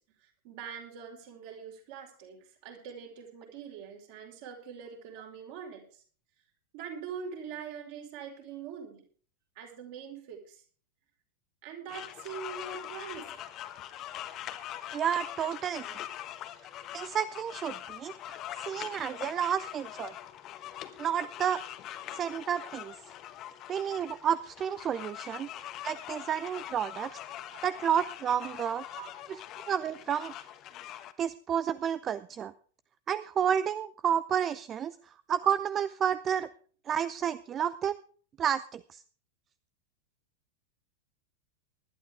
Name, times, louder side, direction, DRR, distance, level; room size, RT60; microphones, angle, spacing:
voice 1, 0.2-6.0 6.7-9.1 9.5-10.6 11.6-13.4 27.5-27.6 28.9-29.4, right 6 dB, 50° right, 1 dB, 5.0 m, -43 dB
sound 1, 11.9-31.1, left 12 dB, 35° left, 1.3 m, -43 dB
voice 2, 14.9-16.0 16.9-20.1 21.0-21.6 22.1-22.9 23.7-25.5 25.8-27.2 27.6-28.8 29.3-29.4 29.7-30.3 31.2-32.5 33.1-36.5 36.9-38.0 38.4-39.0, right 8 dB, 25° right, 16 dB, 0.5 m, -31 dB
20.0 x 12.0 x 3.6 m, 0.43 s
figure-of-eight pair, 90°, 0 cm